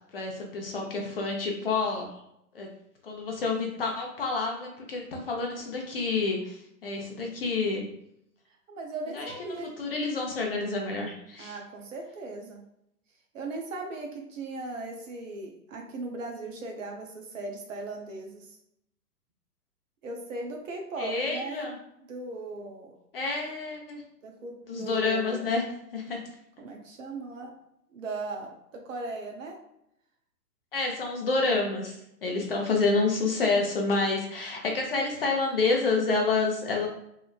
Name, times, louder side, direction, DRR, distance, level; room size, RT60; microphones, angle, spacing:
voice 1, 0.1-2.1 2.5-2.7 3.0-7.9 9.1-9.3 9.8-11.6 21.0-21.7 23.1-24.0 24.7-25.6 25.9-26.2 30.7-32.0 32.2-36.9, left 3 dB, 40° left, 1 dB, 0.5 m, -28 dB
voice 2, 8.7-9.7 11.4-12.6 13.3-18.6 20.0-21.7 22.1-22.9 24.2-25.6 26.6-27.5 27.9-29.6, right 2 dB, 55° right, 2 dB, 0.7 m, -38 dB
2.9 x 2.1 x 2.3 m, 0.78 s
figure-of-eight pair, 120°, 48 cm